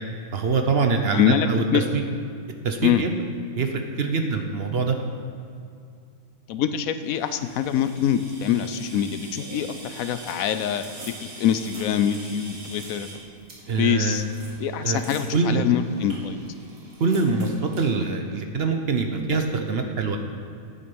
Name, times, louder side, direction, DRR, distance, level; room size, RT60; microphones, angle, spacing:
voice 1, 0.3-2.0 2.6-3.1 3.6-5.0 13.7-14.2 14.8-15.0 15.3-15.7 17.0-20.2, right 4 dB, 50° right, 5 dB, 0.9 m, -24 dB
voice 2, 1.1-1.8 2.8-3.0 6.5-10.8 11.2-13.1 13.8-14.2 14.6-16.4, left 9 dB, 80° left, 11 dB, 1.0 m, -24 dB
Person drk frm fount, 7.1-18.0, right 2 dB, 85° right, 2.3 m, -43 dB
9.9 x 8.6 x 5.4 m, 2.4 s
omnidirectional pair, 1.5 m